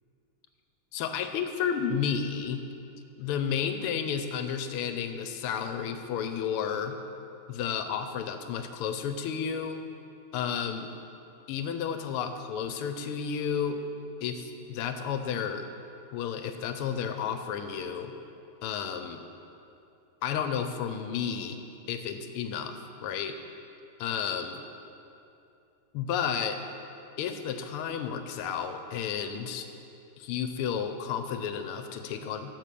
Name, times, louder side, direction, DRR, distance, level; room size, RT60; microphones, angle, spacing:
voice 1, 0.9-2.6 3.2-7.0 7.5-9.8 10.3-10.9 11.5-13.8 14.2-15.6 16.1-18.1 18.6-19.2 20.2-21.6 21.9-22.7 23.0-23.3 24.0-24.6 25.9-26.6 27.2-29.7 30.2-32.5, left 7 dB, 80° left, 8 dB, 1.6 m, -32 dB
12.0 x 5.8 x 6.8 m, 2.7 s
omnidirectional pair, 2.4 m